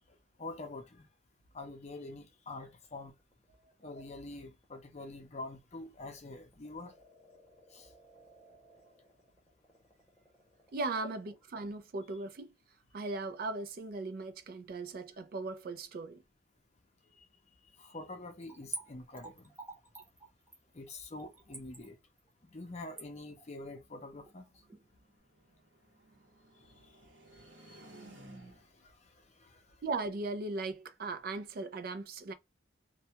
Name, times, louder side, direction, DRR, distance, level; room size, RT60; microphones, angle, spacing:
voice 1, 0.4-1.1 1.5-3.1 3.8-6.9 7.7-7.9 17.8-19.5 20.7-22.0 22.4-24.5 27.7-27.8 28.8-29.6, left 2 dB, 35° left, 0.5 m, -46 dB
sound 1, 2.5-11.5, right 1 dB, 20° left, 0.9 m, -63 dB
voice 2, 10.7-12.5 12.9-16.2 29.8-32.3, right 3 dB, 50° right, 0.4 m, -38 dB
Splash splatter / Trickle dribble, 18.4-24.8 25.1-25.2, right 2 dB, 10° right, 0.7 m, -47 dB
sound 2, 23.4-28.9, right 1 dB, 75° right, 0.9 m, -57 dB
2.2 x 2.2 x 2.7 m
head